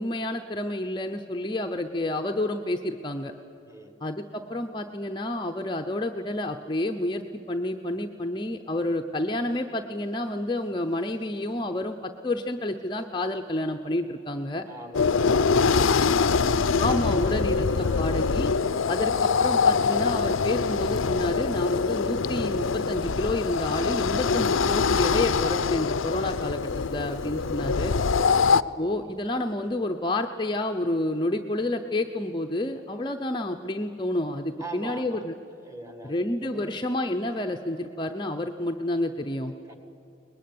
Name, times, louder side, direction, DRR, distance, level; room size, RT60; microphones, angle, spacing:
voice 1, 0.0-3.3 4.0-14.6 16.8-18.5 18.9-27.9 28.8-35.3 36.0-39.5, left 1 dB, 20° left, 5 dB, 0.7 m, -29 dB
voice 2, 14.7-18.3 18.6-19.1 28.1-28.4 34.6-35.2 35.6-36.8 39.7-39.8, right 1 dB, 15° right, 7 dB, 2.0 m, -42 dB
sound 1, 14.9-28.6, left 5 dB, 75° left, 0.6 m, -24 dB
23.0 x 20.5 x 9.5 m, 2.9 s
head